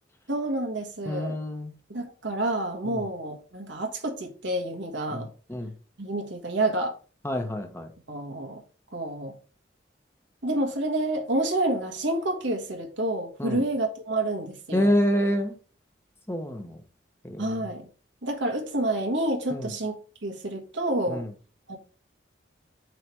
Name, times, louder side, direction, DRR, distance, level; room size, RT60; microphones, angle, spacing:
voice 1, 0.3-1.4 1.9-5.3 6.0-6.9 8.1-8.6 8.9-9.3 10.4-14.9 17.4-17.9 18.2-21.2 21.7-21.8, right 1 dB, 85° right, 1.6 m, -29 dB
voice 2, 1.1-1.7 2.8-3.0 5.1-5.7 7.2-7.9 13.4-13.6 14.7-15.6 16.3-16.8 17.2-17.6 19.5-19.7 21.1-21.3, equal, 15° left, 1.0 m, -27 dB
7.6 x 3.3 x 4.7 m
head